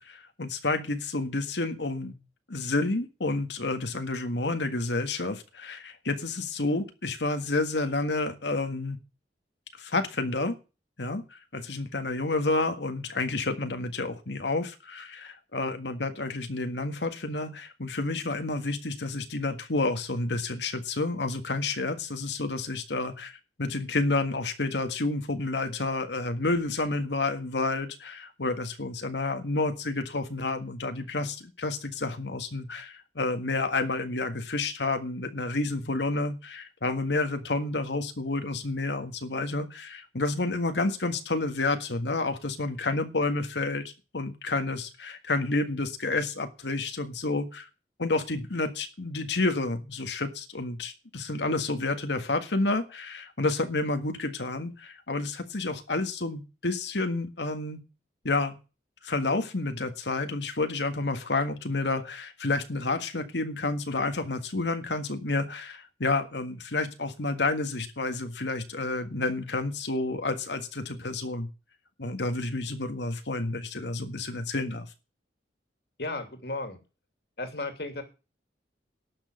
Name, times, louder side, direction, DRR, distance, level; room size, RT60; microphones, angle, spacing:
voice 1, 0.1-2.1 2.5-9.0 9.8-10.6 11.0-47.7 48.0-57.8 58.2-58.6 59.0-71.5 72.0-74.9, left 2 dB, 85° left, 7 dB, 1.7 m, -30 dB
voice 2, 76.0-76.8 77.4-78.0, left 2 dB, 65° left, 7 dB, 2.8 m, -34 dB
12.0 x 6.5 x 9.4 m, 0.31 s
head